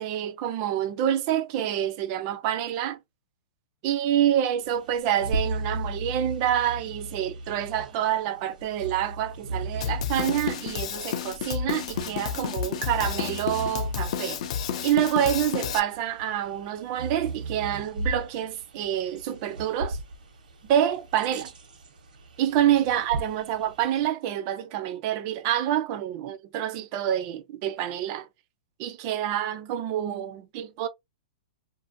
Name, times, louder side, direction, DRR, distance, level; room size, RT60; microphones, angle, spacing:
voice 1, 0.0-3.0 3.8-14.4 14.8-20.0 20.6-21.5 22.4-28.3 28.8-30.9, right 11 dB, 30° right, 0.4 m, -27 dB
Bird vocalization bird call bird song, 4.6-24.1, right 2 dB, 90° right, 1.0 m, -37 dB
Drum kit, 9.8-15.8, left 8 dB, 50° left, 0.5 m, -31 dB
2.5 x 2.5 x 2.5 m
hypercardioid pair, 165°, 4 cm